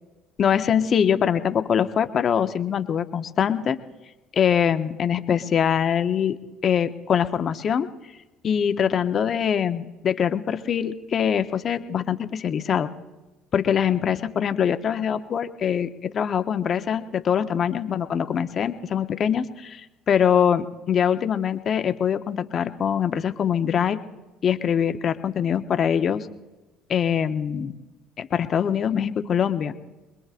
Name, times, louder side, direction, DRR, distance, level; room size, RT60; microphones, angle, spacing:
voice 1, 0.4-3.8 4.3-7.9 8.4-12.9 13.5-24.0 24.4-26.3 26.9-27.7 28.2-29.7, left 8 dB, 50° left, 10 dB, 0.8 m, -23 dB
24.5 x 21.5 x 2.5 m, 1.1 s
hypercardioid pair, 70°, 0 cm